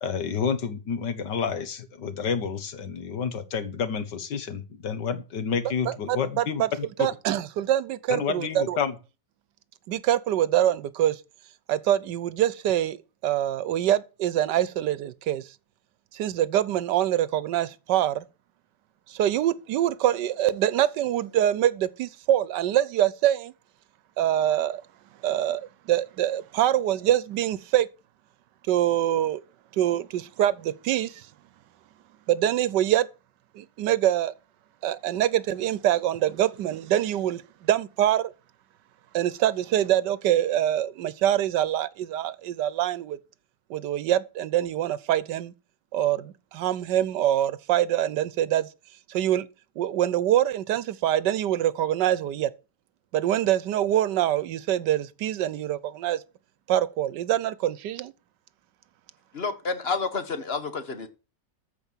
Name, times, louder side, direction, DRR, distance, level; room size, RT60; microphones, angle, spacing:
voice 1, 0.0-7.1 8.1-8.9, left 6 dB, 80° left, 2.0 m, -29 dB
voice 2, 5.8-6.7 7.0-8.8 9.9-11.2 11.7-13.0 13.2-15.5 16.1-18.2 19.1-23.5 24.2-24.8 25.2-27.9 28.7-29.4 29.7-31.3 32.3-33.1 33.5-34.3 34.8-38.3 39.1-43.2 43.7-45.5 45.9-48.7 49.1-49.5 49.8-52.5 53.1-56.2 56.7-58.1, right 12 dB, 80° right, 1.3 m, -24 dB
voice 3, 59.3-61.1, left 4 dB, 40° left, 1.5 m, -29 dB
14.0 x 5.0 x 7.2 m
omnidirectional pair, 1.8 m